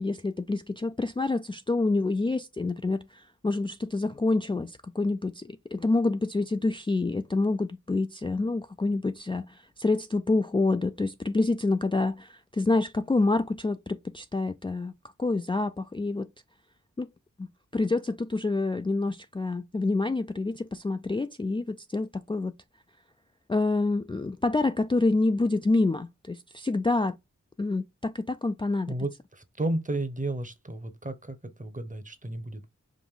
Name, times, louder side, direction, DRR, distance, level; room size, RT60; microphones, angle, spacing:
voice 1, 0.0-16.3 17.0-17.1 17.4-22.5 23.5-27.2 27.6-29.0, left 3 dB, 15° left, 0.4 m, -27 dB
voice 2, 28.9-32.7, right 2 dB, 25° right, 1.0 m, -33 dB
5.1 x 2.5 x 3.7 m
wide cardioid pair, 50°, 30 cm